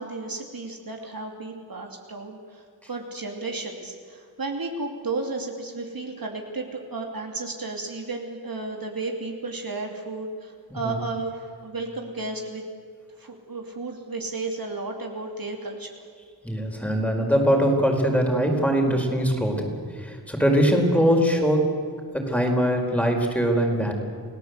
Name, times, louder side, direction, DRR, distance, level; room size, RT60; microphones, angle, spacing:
voice 1, 0.0-12.6 13.2-15.9, right 3 dB, 65° right, 2 dB, 3.0 m, -33 dB
voice 2, 16.4-21.7 22.1-23.9, equal, 5° left, 2 dB, 4.8 m, -22 dB
29.5 x 17.5 x 8.2 m, 2.1 s
wide cardioid pair, 70°, 38 cm